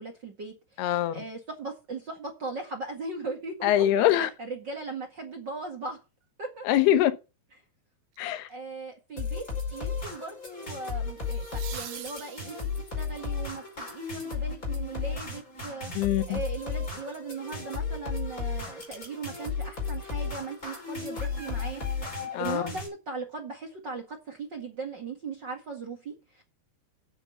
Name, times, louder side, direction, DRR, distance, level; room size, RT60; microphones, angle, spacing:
voice 1, 0.0-6.0 6.4-6.7 8.5-15.9 16.3-21.8 22.1-26.4, right 3 dB, 40° right, 1.7 m, -38 dB
voice 2, 0.8-1.2 3.6-4.3 6.7-7.1 8.2-8.5 16.0-16.4 22.3-22.6, left 12 dB, 85° left, 3.0 m, -23 dB
sound 1, 8.1-8.5 11.2-13.1 15.9-16.0, right 12 dB, 70° right, 1.9 m, -44 dB
sound 2, 9.2-22.9, left 5 dB, 20° left, 5.0 m, -34 dB
8.9 x 8.0 x 7.1 m
omnidirectional pair, 4.6 m